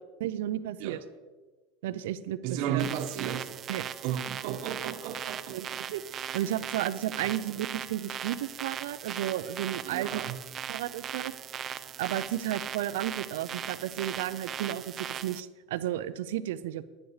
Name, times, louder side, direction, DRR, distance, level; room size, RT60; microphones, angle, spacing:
voice 1, 0.2-1.0 1.8-2.9 3.7-3.8 5.5-6.0 6.3-10.2 10.7-11.3 12.0-16.9, right 12 dB, 85° right, 0.6 m, -33 dB
voice 2, 2.4-3.6 4.0-5.8 6.3-6.5 7.2-7.3 9.8-10.4, right 9 dB, 65° right, 1.2 m, -34 dB
sound 1, 2.8-15.4, right 9 dB, 35° right, 0.5 m, -39 dB
10.0 x 10.0 x 4.9 m
supercardioid pair, 120°, 0 cm